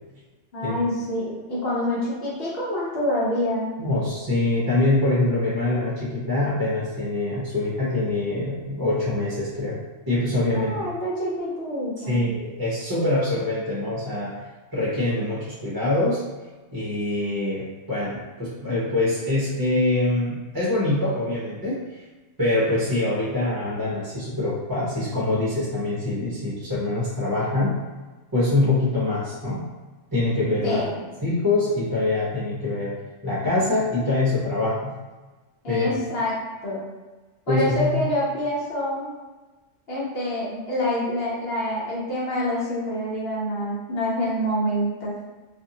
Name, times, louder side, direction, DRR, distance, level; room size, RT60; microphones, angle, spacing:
voice 1, 0.5-3.7 10.5-12.3 30.6-31.0 35.6-36.3 36.6-36.8 37.5-39.1 39.9-45.1, left 1 dB, 55° left, -7 dB, 1.0 m, -26 dB
voice 2, 3.8-9.8 10.1-10.7 12.1-14.4 14.7-16.2 16.7-22.0 22.4-27.8 28.3-29.6 30.1-30.8 31.2-32.9 33.2-34.9 35.7-35.9 37.5-38.0, left 2 dB, 25° right, -9 dB, 0.6 m, -24 dB
2.5 x 2.5 x 2.7 m, 1.2 s
omnidirectional pair, 1.3 m